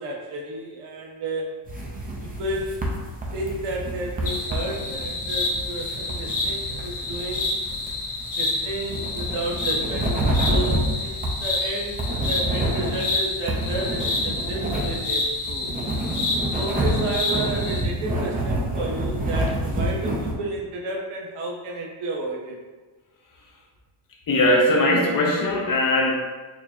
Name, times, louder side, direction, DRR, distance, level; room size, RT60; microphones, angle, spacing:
voice 1, 0.0-1.6 2.2-2.9 3.3-7.5 8.3-10.1 10.5-15.7 16.5-22.6, right 2 dB, 85° right, -1 dB, 0.9 m, -32 dB
sound 1, 1.7-20.3, right 1 dB, 20° right, 0.4 m, -28 dB
sound 2, 4.2-17.8, left 2 dB, 60° left, 1.0 m, -29 dB
voice 2, 24.3-26.1, left 1 dB, 40° left, -1 dB, 0.7 m, -20 dB
4.6 x 2.7 x 2.3 m, 1.3 s
cardioid pair, 140°, 49 cm